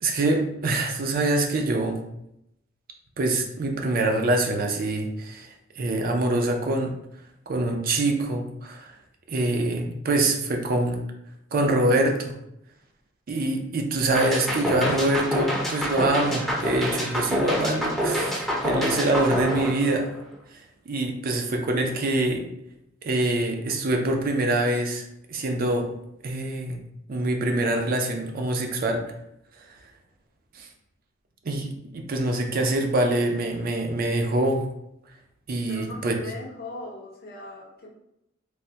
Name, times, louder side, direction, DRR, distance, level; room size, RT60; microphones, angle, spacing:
voice 1, 0.0-2.0 3.2-6.9 7.5-8.9 9.3-11.0 11.5-12.3 13.3-20.1 20.5-22.5 23.0-25.9 26.2-26.8 27.1-29.0 30.5-30.7 31.4-34.7 35.5-36.1, right 2 dB, 45° right, 3 dB, 0.4 m, -25 dB
sound 1, 14.1-20.3, equal, ahead, 0.5 m, -27 dB
voice 2, 35.7-37.9, left 1 dB, 50° left, -1 dB, 0.6 m, -39 dB
3.2 x 2.1 x 2.7 m, 0.81 s
head